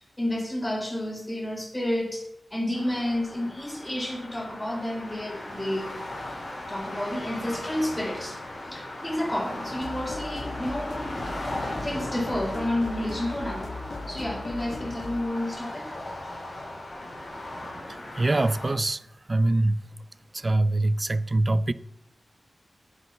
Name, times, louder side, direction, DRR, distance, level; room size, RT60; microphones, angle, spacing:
voice 1, 0.2-5.9 6.7-8.4 8.7-11.0 11.8-13.7 14.1-16.0, left 1 dB, 15° left, 2.5 m, -30 dB
sound 1, 2.7-18.7, left 1 dB, 40° left, 3.3 m, -37 dB
sound 2, 9.8-15.2, left 2 dB, 70° left, 1.3 m, -39 dB
voice 2, 18.2-19.9 20.3-21.7, right 2 dB, 30° right, 0.4 m, -24 dB
8.5 x 8.4 x 5.5 m
wide cardioid pair, 105°, 0 cm